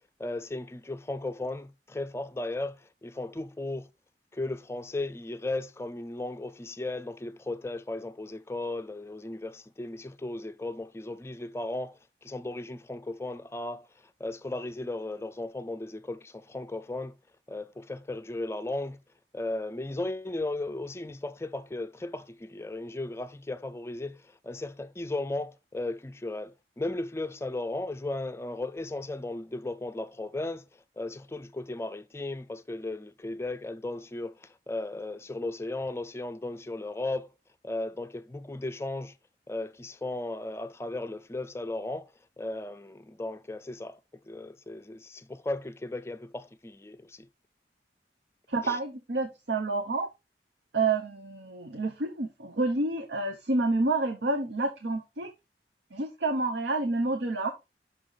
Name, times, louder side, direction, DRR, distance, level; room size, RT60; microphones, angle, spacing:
voice 1, 0.2-3.9 4.3-13.9 14.2-17.1 17.5-19.0 19.3-30.6 31.0-37.3 37.6-39.1 39.5-42.1 42.4-44.0 44.3-47.3 48.6-48.8, left 2 dB, 15° left, 0.4 m, -36 dB
voice 2, 48.5-50.1 50.7-55.3 55.9-57.5, right 3 dB, 80° right, 0.8 m, -29 dB
6.0 x 4.9 x 3.8 m
head